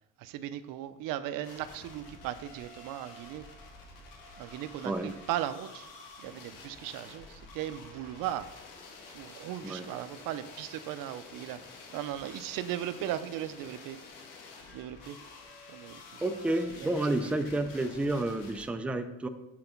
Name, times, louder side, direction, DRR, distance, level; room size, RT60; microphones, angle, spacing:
voice 1, 0.2-3.5 4.4-5.9 6.2-8.5 9.1-11.6 11.9-14.0 14.7-15.2 15.7-16.0 16.8-16.9, right 12 dB, 85° right, 13 dB, 0.6 m, -37 dB
sound 1, 1.4-18.6, left 3 dB, 85° left, 1.8 m, -50 dB
voice 2, 16.2-19.3, right 2 dB, 5° right, 7 dB, 0.4 m, -30 dB
7.6 x 3.9 x 5.8 m, 0.99 s
cardioid pair, 135°, 32 cm